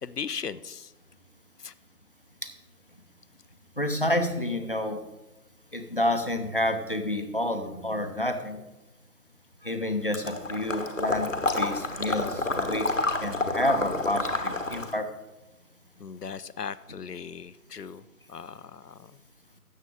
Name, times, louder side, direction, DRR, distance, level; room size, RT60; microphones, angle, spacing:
voice 1, 0.0-0.9 1.6-1.7 16.0-18.0 18.3-19.1, left 6 dB, 80° left, 16 dB, 0.7 m, -38 dB
voice 2, 3.8-5.0 5.7-8.6 9.6-11.3 11.6-12.8 13.2-15.1, left 1 dB, 35° left, 6 dB, 0.8 m, -29 dB
Water / Liquid, 10.1-15.0, left 3 dB, 55° left, 1.1 m, -29 dB
13.0 x 8.2 x 3.7 m, 1.0 s
figure-of-eight pair, 165°, 47 cm